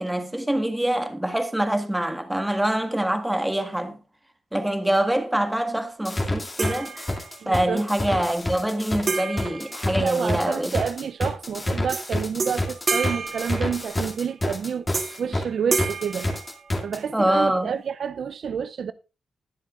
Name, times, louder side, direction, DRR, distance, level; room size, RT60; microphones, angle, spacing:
voice 1, 0.0-4.0 4.5-7.1 7.4-10.7 17.1-17.7, right 1 dB, 10° right, 1.7 m, -25 dB
sound 1, 6.0-15.4 15.8-17.0, left 1 dB, 20° left, 2.4 m, -28 dB
sound 2, 6.6-7.6 9.1-10.6 11.9-12.1 12.4-14.2 14.9-15.3 15.7-17.1, right 4 dB, 50° right, 2.4 m, -30 dB
voice 2, 7.4-7.9 10.0-14.9 15.2-16.3 16.8-18.9, right 7 dB, 65° right, 0.4 m, -29 dB
20.5 x 7.3 x 2.4 m
cardioid pair, 100°, 0 cm